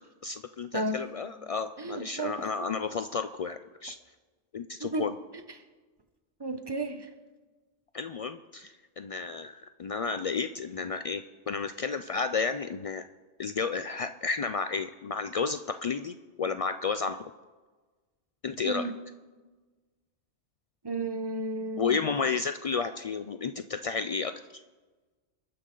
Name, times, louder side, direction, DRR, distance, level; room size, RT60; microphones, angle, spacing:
voice 1, 0.2-4.0 4.5-5.2 7.9-13.0 13.4-17.2 18.4-18.9 21.8-24.3, left 5 dB, 70° left, 9 dB, 0.3 m, -32 dB
voice 2, 0.7-1.0 1.8-2.4 4.8-5.1 6.4-7.1 18.6-19.0 20.8-22.0, right 2 dB, 25° right, 8 dB, 0.9 m, -33 dB
27.0 x 9.8 x 3.9 m, 1.3 s
omnidirectional pair, 1.2 m